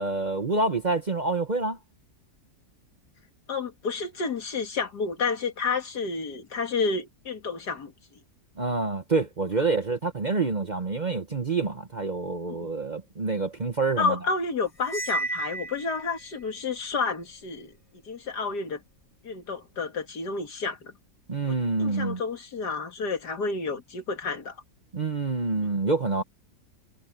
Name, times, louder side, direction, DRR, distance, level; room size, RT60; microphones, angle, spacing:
voice 1, 0.0-1.8 8.6-14.2 21.3-22.2 24.9-26.2, right 3 dB, 35° right, 0.9 m, -27 dB
voice 2, 3.5-7.9 12.6-12.7 14.0-17.7 18.1-18.8 19.2-20.9 21.4-24.6 25.6-25.7, left 4 dB, 75° left, 2.7 m, -30 dB
Cymbal, 14.8-16.3, right 2 dB, 20° left, 2.1 m, -32 dB
omnidirectional pair, 1.7 m